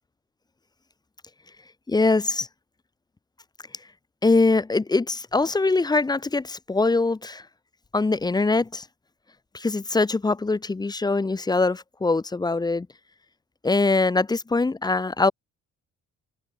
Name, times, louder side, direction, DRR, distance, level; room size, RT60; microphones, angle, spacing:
voice 1, 1.9-2.5 4.2-7.5 7.9-8.9 9.5-12.9 13.6-15.3, left 3 dB, 15° left, 0.5 m, -22 dB
cardioid pair, 90°, 30 cm